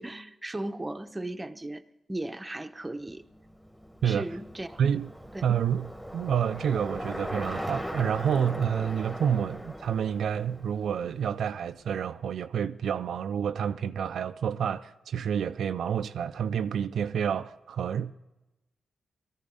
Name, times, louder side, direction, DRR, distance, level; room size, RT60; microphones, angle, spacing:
voice 1, 0.0-1.8 2.1-3.2 4.0-4.8 5.3-5.4, right 1 dB, 20° right, 0.8 m, -36 dB
Bicycle, 3.3-11.6, equal, 5° left, 1.7 m, -39 dB
voice 2, 4.8-5.1 5.4-18.1, right 8 dB, 75° right, 0.4 m, -29 dB
18.0 x 14.0 x 3.9 m
supercardioid pair, 55°, 0 cm